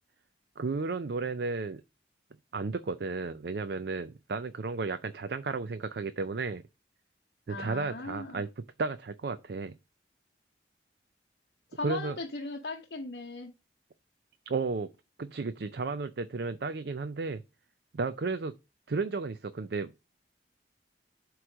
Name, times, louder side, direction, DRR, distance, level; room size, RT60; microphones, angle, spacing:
voice 1, 0.6-1.8 2.5-6.6 7.5-8.5 8.8-9.7 11.8-12.2 14.5-14.9 15.2-17.4 17.9-18.5 18.9-20.1, right 4 dB, 65° right, 0.5 m, -33 dB
voice 2, 7.5-8.4 11.7-13.5, left 2 dB, 65° left, 0.9 m, -38 dB
7.9 x 3.1 x 6.1 m
head